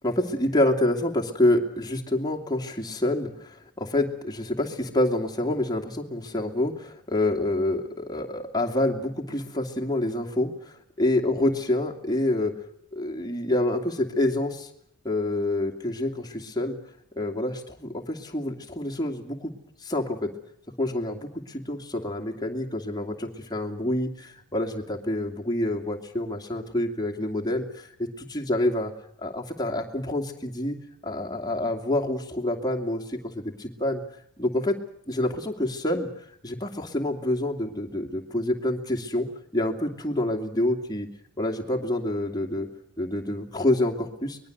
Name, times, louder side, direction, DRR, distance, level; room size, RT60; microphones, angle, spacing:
voice 1, 0.0-12.5 12.9-14.7 15.0-16.8 17.1-19.5 19.8-20.3 20.8-28.9 29.2-30.8 31.0-34.0 34.4-34.8 35.1-36.1 36.4-41.1 41.4-42.7 43.0-44.4, left 1 dB, 15° left, 0 dB, 2.6 m, -27 dB
24.0 x 21.0 x 8.1 m, 0.69 s
head